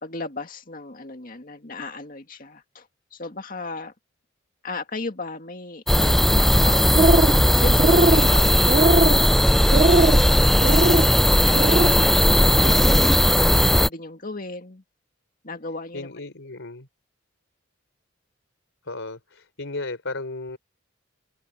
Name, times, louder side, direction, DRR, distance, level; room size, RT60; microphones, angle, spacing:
voice 1, 0.0-3.9 4.6-6.9 7.5-14.8 15.4-16.1, left 3 dB, 45° left, 2.2 m, -36 dB
sound 1, 5.9-13.9, equal, ahead, 0.5 m, -17 dB
sound 2, 6.8-7.4 7.7-8.3 8.7-9.2 9.7-10.2 10.6-11.1 11.5-11.9, right 2 dB, 35° right, 0.7 m, -20 dB
voice 2, 12.6-13.3 15.9-16.9 18.8-20.6, left 2 dB, 75° left, 3.8 m, -35 dB
head